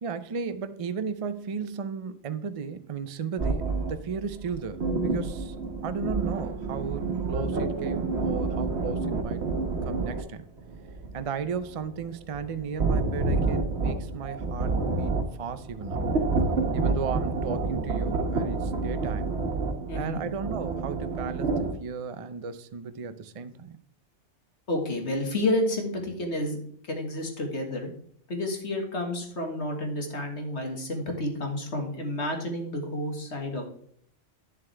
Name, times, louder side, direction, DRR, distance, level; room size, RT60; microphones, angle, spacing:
voice 1, 0.0-5.6 5.8-9.5 9.8-10.5 11.1-16.0 16.7-19.3 19.9-23.8, right 6 dB, 40° right, 11 dB, 0.5 m, -35 dB
sound 1, 3.4-10.2 10.6-21.7, right 3 dB, 60° right, 1.3 m, -29 dB
voice 2, 19.9-20.2 24.7-26.6 26.9-27.9 28.3-33.7, left 1 dB, 65° left, 3 dB, 2.0 m, -30 dB
10.5 x 7.2 x 3.4 m, 0.63 s
omnidirectional pair, 1.2 m